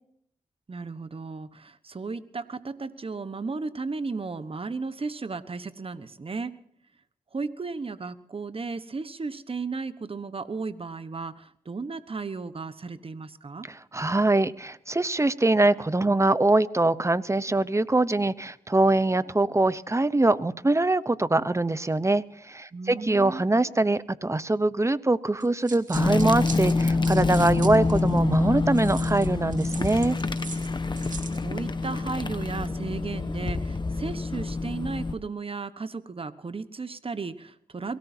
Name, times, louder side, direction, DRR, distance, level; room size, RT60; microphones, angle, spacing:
voice 1, 0.7-6.6 7.3-13.7 22.7-23.4 31.0-38.0, right 4 dB, 40° right, 12 dB, 1.2 m, -35 dB
voice 2, 13.7-30.2, right 2 dB, 20° right, 16 dB, 0.8 m, -23 dB
sound 1, 25.4-28.2 28.7-31.4, right 5 dB, 65° right, 2.2 m, -41 dB
sound 2, 25.9-35.1, left 3 dB, 35° left, 1.3 m, -26 dB
23.0 x 17.5 x 2.8 m, 0.69 s
cardioid pair, 60°, 14 cm